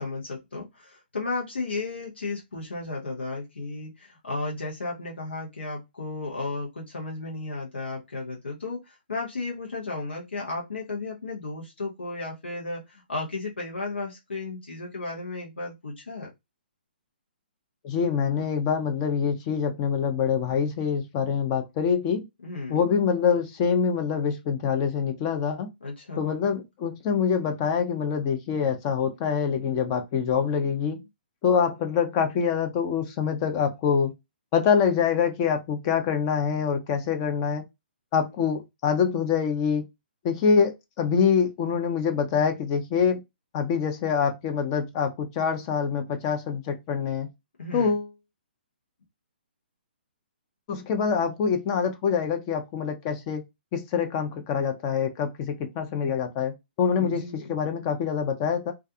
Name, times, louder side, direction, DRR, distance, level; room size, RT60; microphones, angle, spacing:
voice 1, 0.0-16.3 22.4-22.9 25.8-26.3 47.6-47.9 57.0-57.5, left 3 dB, 85° left, 0.8 m, -34 dB
voice 2, 17.8-22.3 22.7-25.7 26.2-31.0 31.4-34.1 34.5-37.6 38.1-39.8 40.2-43.2 43.5-47.3 47.7-48.1 50.7-53.4 53.7-58.7, left 6 dB, 30° left, 0.5 m, -25 dB
2.4 x 2.2 x 2.6 m
hypercardioid pair, 135°, 6 cm